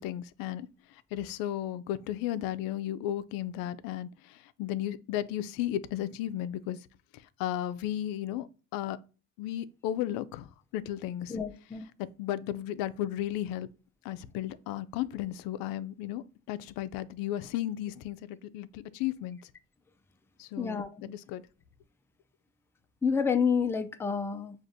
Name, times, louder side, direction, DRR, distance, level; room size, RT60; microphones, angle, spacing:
voice 1, 0.0-6.9 7.1-8.5 8.7-9.0 9.4-11.4 11.7-11.9 12.2-13.7 14.0-19.5 20.4-21.4, left 12 dB, 80° left, 0.5 m, -34 dB
voice 2, 11.3-11.9 20.6-20.9 23.0-24.5, left 6 dB, 5° left, 0.4 m, -28 dB
6.1 x 2.5 x 2.6 m
cardioid pair, 105°, 35 cm